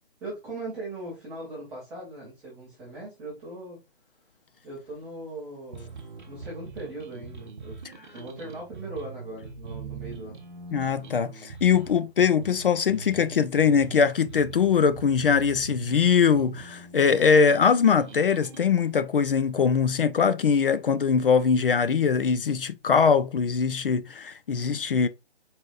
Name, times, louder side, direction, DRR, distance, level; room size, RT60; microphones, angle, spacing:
voice 1, 0.2-3.8 4.6-7.8 8.1-10.4, right 2 dB, 5° right, 0.5 m, -39 dB
sound 1, 5.7-18.7, right 4 dB, 50° right, 0.8 m, -42 dB
voice 2, 10.7-25.1, left 6 dB, 55° left, 0.5 m, -22 dB
4.2 x 3.8 x 2.5 m
figure-of-eight pair, 150°, 32 cm